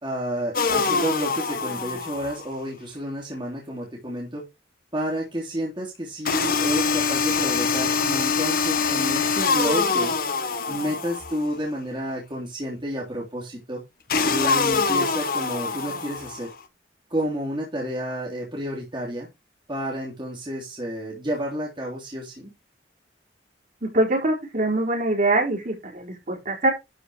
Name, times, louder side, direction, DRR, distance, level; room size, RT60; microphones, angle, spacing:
voice 1, 0.0-4.4 4.9-10.1 10.7-13.8 14.2-16.5 17.1-19.3 19.7-22.5, equal, 25° right, -4 dB, 3.3 m, -30 dB
sound 1, 0.5-2.5 6.2-11.5 14.1-16.5, left 5 dB, 55° left, 1.2 m, -24 dB
voice 2, 23.8-26.7, right 2 dB, 50° right, -2 dB, 4.9 m, -23 dB
12.5 x 5.1 x 4.8 m, 0.23 s
head